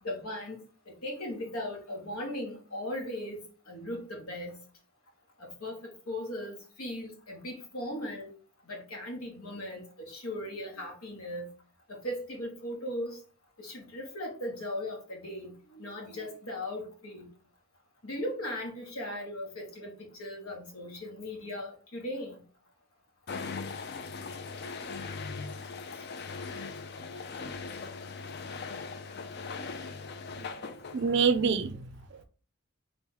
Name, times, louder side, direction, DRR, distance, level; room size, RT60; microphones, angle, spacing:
voice 1, 0.0-4.6 5.4-8.3 8.6-11.5 11.9-13.2 13.6-17.3 18.0-22.4 25.9-26.3, left 1 dB, 80° left, 1 dB, 1.3 m, -38 dB
sound 1, 23.3-31.5, left 4 dB, 45° left, 0.4 m, -40 dB
voice 2, 30.9-32.2, right 5 dB, 50° right, 11 dB, 0.4 m, -27 dB
3.5 x 3.1 x 3.7 m, 0.37 s
head